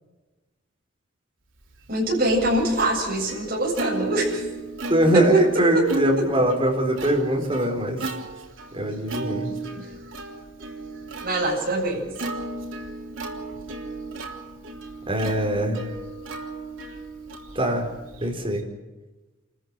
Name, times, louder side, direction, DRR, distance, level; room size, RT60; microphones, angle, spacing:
voice 1, 1.9-4.5 5.1-5.4 5.7-5.8 6.2-6.3 9.7-9.9 11.2-12.2, right 1 dB, 50° right, -3 dB, 8.0 m, -24 dB
Plucked string instrument, 1.9-18.6, right 2 dB, 80° right, 3.5 m, -35 dB
voice 2, 4.9-8.0 8.7-9.5 15.1-15.8 17.5-17.9 18.2-18.6, right 1 dB, 25° right, 2 dB, 4.5 m, -22 dB
28.5 x 14.0 x 8.1 m, 1.1 s
head